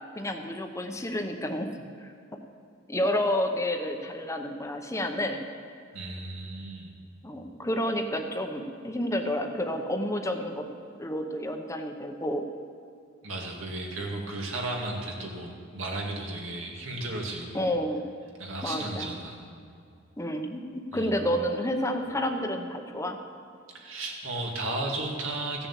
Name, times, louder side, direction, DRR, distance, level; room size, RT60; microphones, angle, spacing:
voice 1, 0.1-2.4 2.9-5.4 7.2-10.7 11.0-12.5 17.5-18.1 18.6-19.1 20.2-23.2, left 1 dB, 15° left, 5 dB, 0.8 m, -30 dB
voice 2, 5.9-6.9 13.2-17.7 18.4-19.4 20.9-21.1 23.7-25.7, right 2 dB, 85° right, -1 dB, 2.2 m, -34 dB
15.0 x 7.0 x 7.4 m, 2.4 s
head